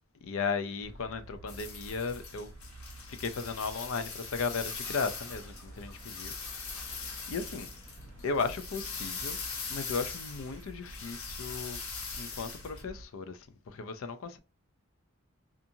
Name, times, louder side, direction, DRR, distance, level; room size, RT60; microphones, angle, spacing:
voice 1, 0.2-2.5 3.1-7.7 8.2-9.4 9.7-11.8 12.2-14.4, left 4 dB, 70° left, 0.4 m, -36 dB
sound 1, 0.8-13.1, right 1 dB, 60° right, 0.4 m, -49 dB
sound 2, 1.5-12.8, left 5 dB, 85° left, 0.8 m, -41 dB
sound 3, 4.6-9.8, left 1 dB, 25° left, 1.2 m, -57 dB
2.6 x 2.5 x 2.7 m
head